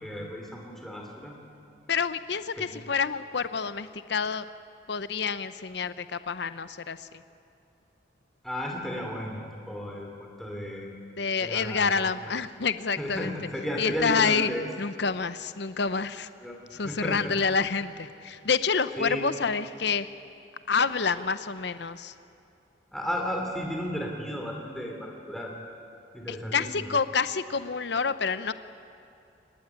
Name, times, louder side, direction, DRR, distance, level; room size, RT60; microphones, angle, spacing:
voice 1, 0.0-1.3 2.6-2.7 8.4-10.9 11.4-12.1 13.0-14.7 16.4-17.4 19.0-19.2 22.9-25.6 26.1-26.9, equal, ahead, 0 dB, 2.8 m, -34 dB
voice 2, 1.9-4.5 4.9-7.1 11.2-13.3 13.8-14.5 14.8-16.3 16.7-20.1 20.7-22.1 26.3-28.5, left 5 dB, 60° left, 12 dB, 0.7 m, -28 dB
24.0 x 19.5 x 10.0 m, 2.7 s
head